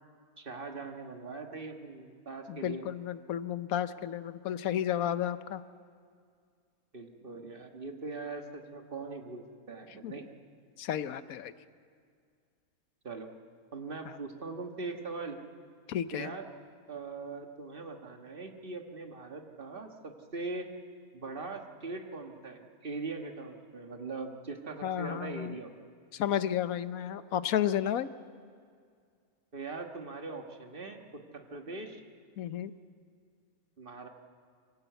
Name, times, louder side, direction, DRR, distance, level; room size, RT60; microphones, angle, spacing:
voice 1, 0.4-2.8 6.9-10.3 13.0-13.3 13.7-15.4 16.1-16.5 16.9-20.7 21.1-25.7 29.5-32.0 33.8-34.1, right 3 dB, 40° right, 4 dB, 1.6 m, -41 dB
voice 2, 2.5-5.6 10.0-10.1 10.8-11.5 15.9-16.3 24.8-25.5 26.1-28.1 32.4-32.7, left 10 dB, 75° left, 13 dB, 1.1 m, -32 dB
25.0 x 17.0 x 8.0 m, 2.2 s
omnidirectional pair, 1.5 m